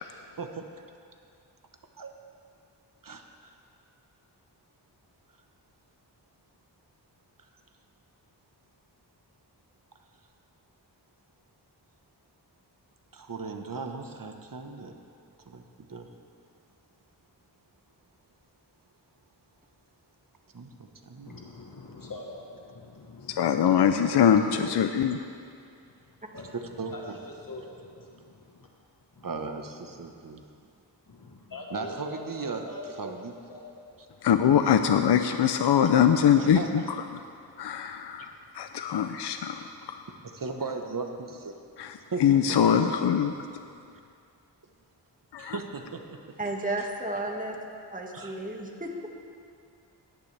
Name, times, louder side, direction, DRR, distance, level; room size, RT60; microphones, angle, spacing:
voice 1, 0.4-0.7 2.0-2.1 3.0-3.6 13.1-14.9 15.5-15.6 15.9-16.1 20.5-21.4 24.6-24.8 26.8-26.9 29.2-30.4 31.7-32.6 33.0-33.3 36.4-36.9 38.2-38.3 40.2-41.5 42.1-42.9 45.4-46.5 46.8-46.9 48.1-48.6, right 4 dB, 50° right, 5 dB, 1.2 m, -37 dB
voice 2, 21.3-25.1 25.3-28.7 29.1-29.4 29.9-30.1 31.1-33.2 33.5-34.0, left 2 dB, 50° left, -1 dB, 1.5 m, -45 dB
voice 3, 23.4-25.2 34.2-36.8 37.6-40.0 41.8-43.3 45.3-45.6, left 8 dB, 65° left, 8 dB, 0.6 m, -23 dB
voice 4, 46.4-47.6 47.9-48.9, right 2 dB, 20° right, 0 dB, 1.8 m, -33 dB
17.5 x 11.5 x 3.4 m, 2.4 s
cardioid pair, 50°, 43 cm